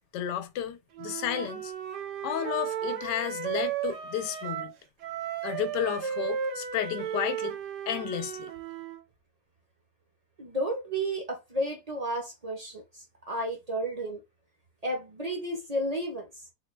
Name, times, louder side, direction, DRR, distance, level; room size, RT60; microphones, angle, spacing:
voice 1, 0.1-1.7 2.2-4.7 5.4-7.5 7.9-8.5, left 10 dB, 90° left, 1.2 m, -32 dB
Wind instrument woodwind instrument, 0.9-4.7 5.0-9.0, right 8 dB, 80° right, 1.3 m, -34 dB
voice 2, 10.4-14.2 14.8-16.3, right 1 dB, 35° right, 0.6 m, -32 dB
3.7 x 2.2 x 3.1 m
omnidirectional pair, 1.8 m